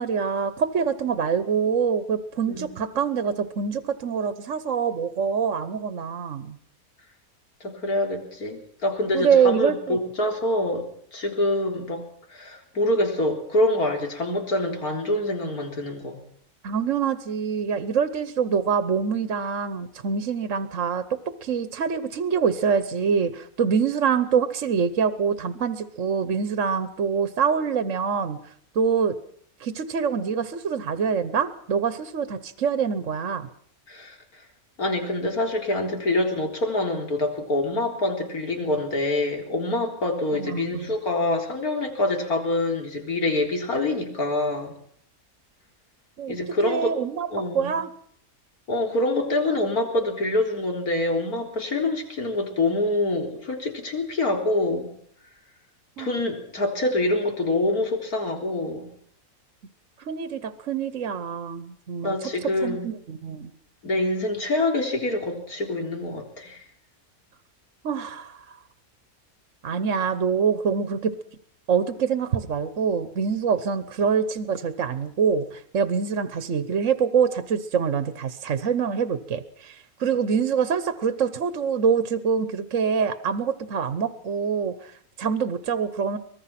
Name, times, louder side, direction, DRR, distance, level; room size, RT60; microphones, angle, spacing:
voice 1, 0.0-6.6 9.1-10.0 16.6-28.4 28.7-29.2 29.6-33.5 40.3-40.9 46.2-46.4 46.6-47.3 47.5-47.9 56.0-56.1 60.0-62.3 62.6-63.5 67.8-68.6 69.6-71.1 71.7-86.2, right 6 dB, 60° right, 12 dB, 1.3 m, -25 dB
voice 2, 7.6-10.9 11.1-12.0 12.3-16.2 33.9-34.2 34.8-44.7 46.3-47.0 47.3-47.8 48.7-54.9 56.0-58.9 62.0-62.8 63.8-66.6, left 2 dB, 80° left, 3 dB, 4.2 m, -25 dB
24.5 x 20.0 x 5.9 m, 0.62 s
omnidirectional pair, 1.5 m